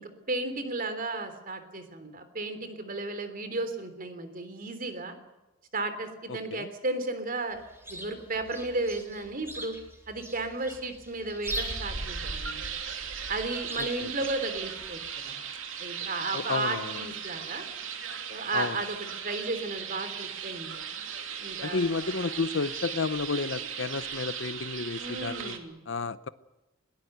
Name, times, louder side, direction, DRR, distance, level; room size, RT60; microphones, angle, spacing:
voice 1, 0.0-5.1 5.7-7.6 7.9-9.7 10.1-12.8 13.3-15.0 15.3-15.4 15.8-17.6 18.3-20.9 21.4-21.8 25.0-25.8, right 2 dB, 45° right, 9 dB, 3.4 m, -34 dB
voice 2, 6.3-6.7 13.8-14.1 16.3-17.1 18.5-18.8 21.6-25.5 25.9-26.3, left 4 dB, 65° left, 15 dB, 0.7 m, -32 dB
Chirp tweet, 7.5-15.1, right 1 dB, 15° right, 4.2 m, -42 dB
sound 1, 11.5-25.6, right 7 dB, 75° right, 2.8 m, -37 dB
21.5 x 19.5 x 8.0 m, 1.0 s
head